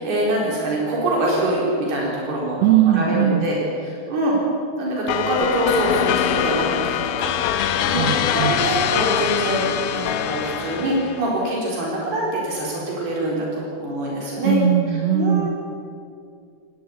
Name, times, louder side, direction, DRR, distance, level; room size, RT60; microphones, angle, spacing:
voice 1, 0.0-2.6 2.9-4.4 4.8-14.6 15.1-15.5, right 1 dB, 80° right, -3 dB, 6.2 m, -24 dB
voice 2, 2.6-3.5 7.9-8.6 14.4-15.5, right 10 dB, 60° right, 3 dB, 2.0 m, -19 dB
sound 1, 5.1-11.3, left 10 dB, 75° left, 2.7 m, -23 dB
21.0 x 19.0 x 8.5 m, 2.3 s
omnidirectional pair, 4.5 m